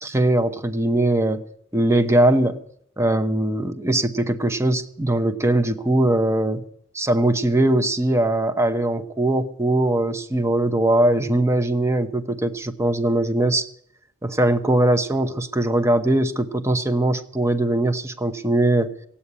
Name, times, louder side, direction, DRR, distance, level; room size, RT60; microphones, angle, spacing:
voice 1, 0.0-1.4 1.7-2.6 3.0-6.6 6.9-13.6 14.2-18.9, right 1 dB, 15° right, 8 dB, 0.9 m, -21 dB
17.0 x 8.6 x 9.6 m, 0.71 s
head